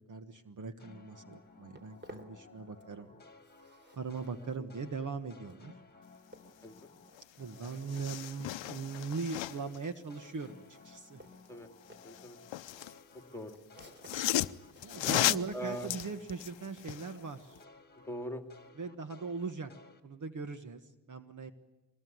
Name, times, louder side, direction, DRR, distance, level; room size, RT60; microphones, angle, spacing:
voice 1, 0.0-3.1 4.0-5.7 7.4-11.2 14.8-17.6 18.8-19.7 20.0-21.5, right 4 dB, 40° right, 10 dB, 1.5 m, -40 dB
sound 1, 0.8-7.1 7.4-16.7 17.0-20.0, left 3 dB, 20° left, 2.4 m, -57 dB
Walk footsteps, 1.3-3.0 3.3-18.7, right 1 dB, 25° right, 3.4 m, -58 dB
voice 2, 6.6-7.0 11.5-11.7 12.0-12.4 13.3-13.6 14.0-14.2 15.0-15.9 18.0-18.4, equal, 5° left, 6 dB, 2.7 m, -41 dB
sound 2, 7.2-7.3 7.5-9.8 11.9-13.0 13.8-17.1 17.6-17.7, left 14 dB, 75° left, 0.8 m, -35 dB
23.5 x 21.0 x 9.5 m, 1.0 s
cardioid pair, 110°, 46 cm